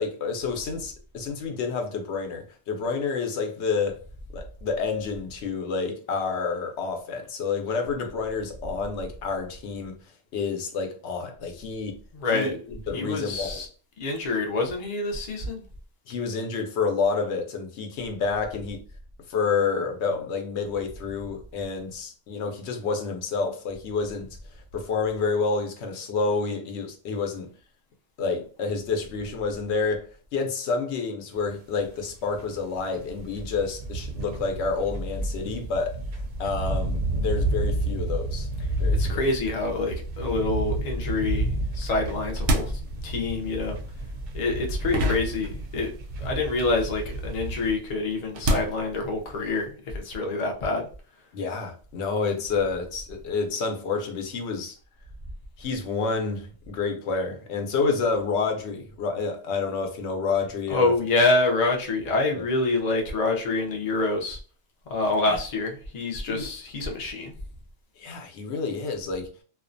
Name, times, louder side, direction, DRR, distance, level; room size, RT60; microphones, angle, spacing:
voice 1, 0.0-4.0 4.3-10.0 10.3-12.0 12.3-13.6 16.1-18.8 19.3-27.5 28.2-30.1 30.3-38.5 38.8-39.2 51.3-54.7 55.6-60.9 62.3-62.4 65.3-65.4 66.2-66.5 68.0-69.3, left 4 dB, 80° left, 0.9 m, -29 dB
voice 2, 12.1-12.5 12.9-13.7 14.0-15.6 39.0-43.8 44.3-45.9 46.2-50.9 60.7-64.4 64.9-67.3, left 2 dB, 45° left, 0.6 m, -26 dB
sound 1, 31.5-31.6 31.8-47.7, right 1 dB, 55° right, 0.6 m, -31 dB
sound 2, 42.1-46.1 46.4-49.7, right 1 dB, 90° right, 0.9 m, -30 dB
2.4 x 2.1 x 2.5 m
omnidirectional pair, 1.1 m